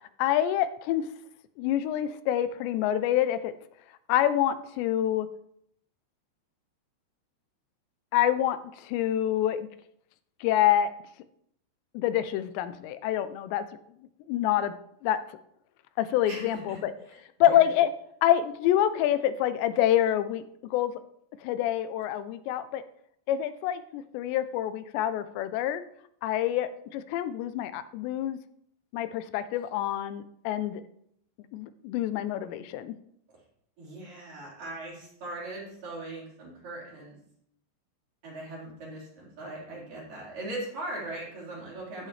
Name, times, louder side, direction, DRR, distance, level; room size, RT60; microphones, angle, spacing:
voice 1, 0.2-1.1 1.6-3.5 4.1-5.3 8.1-9.7 10.4-10.9 11.9-13.6 14.3-14.7 15.0-15.2 16.0-16.9 17.4-17.9 18.2-20.4 20.7-20.9 21.4-22.8 23.3-25.8 26.2-28.4 28.9-30.8 31.5-33.0, left 11 dB, 85° left, 12 dB, 2.9 m, -26 dB
voice 2, 16.3-16.8 17.4-17.6 33.8-37.2 38.2-42.1, right 2 dB, 50° right, -6 dB, 5.9 m, -39 dB
14.0 x 11.0 x 3.3 m, 0.72 s
omnidirectional pair, 4.9 m